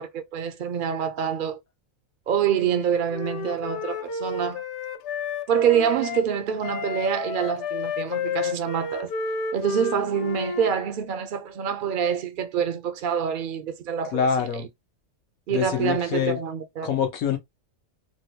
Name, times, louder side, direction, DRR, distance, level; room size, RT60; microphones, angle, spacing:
voice 1, 0.0-1.6 2.3-4.6 5.5-9.1 9.5-14.2 15.5-17.0, right 8 dB, 65° right, 0.5 m, -26 dB
Wind instrument woodwind instrument, 2.6-6.2 6.6-10.7, left 5 dB, 65° left, 0.8 m, -31 dB
voice 2, 14.1-14.7 15.5-16.4 16.8-17.4, left 8 dB, 85° left, 1.3 m, -25 dB
3.7 x 2.2 x 2.8 m
omnidirectional pair, 1.4 m